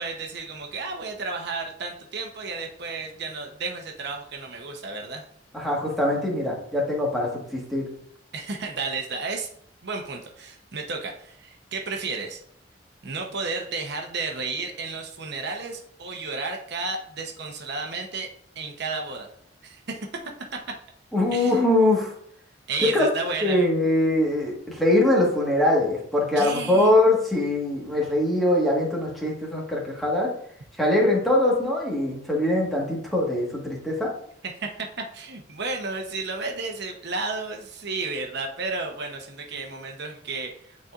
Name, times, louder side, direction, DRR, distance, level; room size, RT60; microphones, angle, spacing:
voice 1, 0.0-5.3 8.3-9.5 9.8-12.4 13.0-18.3 18.6-19.3 19.6-20.1 20.5-20.6 21.3-21.6 22.7-23.7 26.4-26.9 34.4-40.9, right 3 dB, 65° right, 3 dB, 0.9 m, -32 dB
voice 2, 5.5-7.8 21.1-22.1 22.8-23.1 23.4-30.3 30.8-34.1, left 1 dB, ahead, -3 dB, 1.5 m, -22 dB
9.4 x 4.1 x 2.5 m, 0.66 s
head